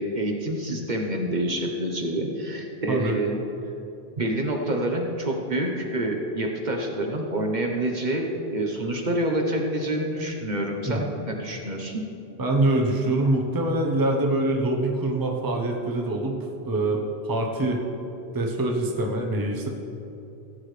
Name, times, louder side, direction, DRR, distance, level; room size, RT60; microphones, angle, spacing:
voice 1, 0.0-3.3 4.2-12.0, right 1 dB, 45° right, 1 dB, 1.0 m, -27 dB
voice 2, 12.4-16.4 16.7-17.8 18.3-19.7, right 2 dB, 20° right, 1 dB, 0.9 m, -24 dB
16.5 x 8.5 x 3.2 m, 2.9 s
omnidirectional pair, 1.1 m